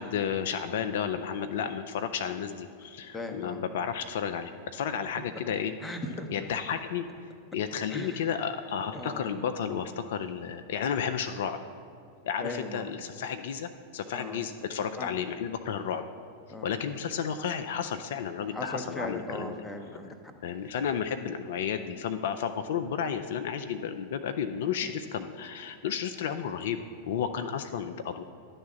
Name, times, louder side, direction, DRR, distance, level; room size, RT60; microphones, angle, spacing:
voice 1, 0.0-5.7 6.3-7.1 7.5-11.6 12.3-16.0 16.6-19.6 20.4-28.2, left 7 dB, 55° left, 8 dB, 0.3 m, -32 dB
voice 2, 3.1-3.6 5.8-6.3 7.9-8.3 8.9-9.3 12.4-13.1 14.1-14.4 15.0-15.1 16.5-16.7 18.5-20.2 24.8-25.0, left 1 dB, 10° left, 5 dB, 0.7 m, -38 dB
10.5 x 3.5 x 7.1 m, 2.4 s
figure-of-eight pair, 90°, 0 cm